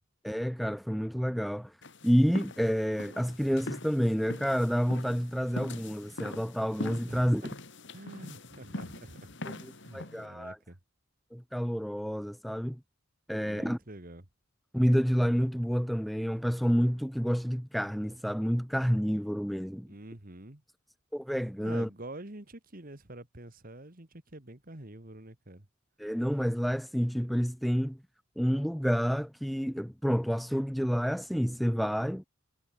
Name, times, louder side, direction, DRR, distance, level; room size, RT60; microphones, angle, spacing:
voice 1, 0.2-1.7 2.0-7.4 9.4-10.6 11.3-12.8 13.3-13.8 14.7-19.9 21.1-21.9 26.0-28.0 28.4-32.2, equal, ahead, 0.9 m, -29 dB
sound 1, 1.8-10.3, left 2 dB, 55° left, 2.7 m, -43 dB
voice 2, 7.1-7.5 7.9-10.8 13.4-14.3 19.9-20.6 21.6-25.7, right 1 dB, 40° right, 1.9 m, -47 dB
head